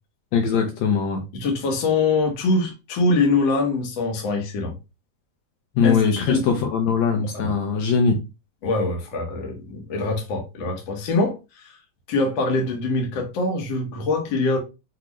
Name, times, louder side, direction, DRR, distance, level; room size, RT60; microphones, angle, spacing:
voice 1, 0.3-1.2 5.8-8.2, left 6 dB, 75° left, 1.9 m, -21 dB
voice 2, 1.3-4.7 5.8-6.6 7.3-7.5 8.6-11.8 12.1-14.6, left 3 dB, 55° left, 1.5 m, -24 dB
6.0 x 2.4 x 3.1 m
omnidirectional pair, 3.4 m